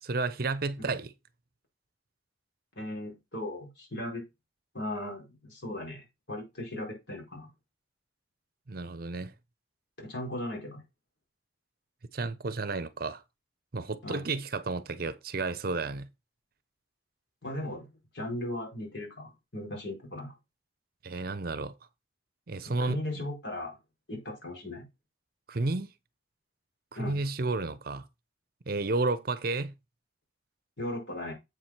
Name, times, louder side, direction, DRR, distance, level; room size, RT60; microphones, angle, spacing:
voice 1, 0.0-1.1 8.7-9.3 12.1-13.2 13.7-16.1 21.0-21.7 22.5-23.2 25.5-25.9 27.0-28.0 28.7-29.7, right 3 dB, 55° right, 0.7 m, -32 dB
voice 2, 2.8-4.2 4.7-7.5 10.0-10.8 14.0-14.3 17.4-17.9 18.1-20.3 22.8-23.8 24.1-24.8 26.9-27.2 30.8-31.3, left 1 dB, 70° left, 4.6 m, -37 dB
7.9 x 4.8 x 5.9 m
head